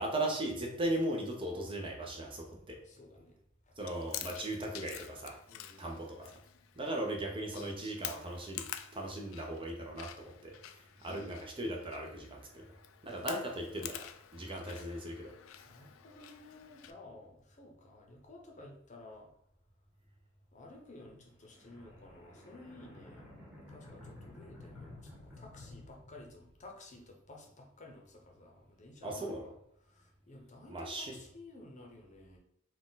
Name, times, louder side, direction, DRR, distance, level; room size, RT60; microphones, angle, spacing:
voice 1, 0.0-2.8 3.8-5.4 5.8-6.4 6.8-12.7 13.0-14.1 14.3-15.3 29.0-29.5 30.7-31.2, right 1 dB, 25° right, 1 dB, 0.6 m, -38 dB
voice 2, 2.8-3.4 3.7-3.8 5.5-6.0 13.1-13.2 15.6-19.3 20.5-23.4 23.7-29.5 29.8-32.4, left 2 dB, 40° left, 0 dB, 0.8 m, -54 dB
Chewing mastication, 3.8-16.9, left 11 dB, 80° left, 0.3 m, -48 dB
sound 1, 21.0-26.8, left 2 dB, 5° right, 1.2 m, -53 dB
4.1 x 2.4 x 3.9 m, 0.73 s
head